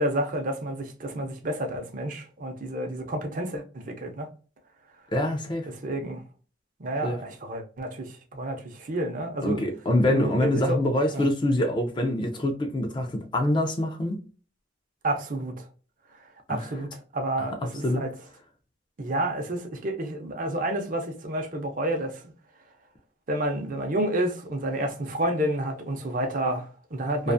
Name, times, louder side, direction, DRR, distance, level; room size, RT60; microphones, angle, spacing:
voice 1, 0.0-4.3 5.7-6.2 6.8-9.7 10.1-10.8 11.1-11.2 15.0-15.7 16.5-18.1 19.0-22.3 23.3-27.3, right 1 dB, 45° right, 0.6 m, -30 dB
voice 2, 5.1-5.7 7.0-7.2 9.4-14.2 16.5-16.6 17.8-18.0 27.2-27.3, left 1 dB, 25° left, 0.4 m, -25 dB
2.4 x 2.3 x 2.5 m
head